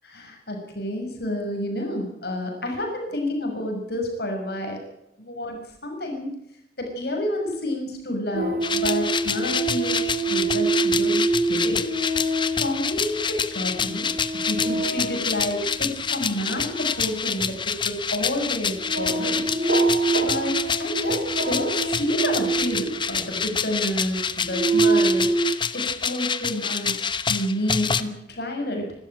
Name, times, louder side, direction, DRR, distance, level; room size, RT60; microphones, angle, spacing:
voice 1, 0.1-4.8 5.3-5.6 5.8-6.3 6.8-10.0 10.3-11.8 12.6-14.1 14.5-19.5 20.2-28.9, left 1 dB, 65° left, 2 dB, 6.3 m, -29 dB
sound 1, 8.3-23.5 24.1-25.5, right 3 dB, 65° right, 6.2 m, -26 dB
sound 2, 8.6-28.0, left 6 dB, 25° left, 1.0 m, -28 dB
27.0 x 13.0 x 9.0 m, 0.79 s
head